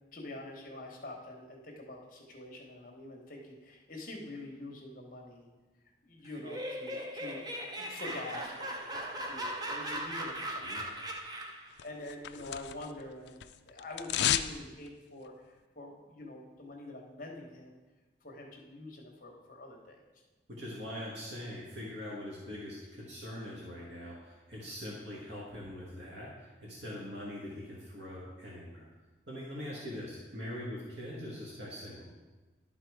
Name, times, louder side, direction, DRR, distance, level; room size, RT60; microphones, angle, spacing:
voice 1, 0.1-5.5 6.0-7.4 7.8-11.2 11.8-17.8 18.2-20.0 24.7-24.8, left 2 dB, 45° left, 1 dB, 1.1 m, -46 dB
Laughter, 6.3-11.7, right 1 dB, 20° right, 0.6 m, -39 dB
sound 1, 11.8-13.0 13.3-14.6 14.9-15.0, left 11 dB, 65° left, 0.3 m, -32 dB
voice 2, 20.5-28.8 29.3-32.1, left 1 dB, 70° right, -5 dB, 1.5 m, -42 dB
11.5 x 3.9 x 4.7 m, 1.2 s
head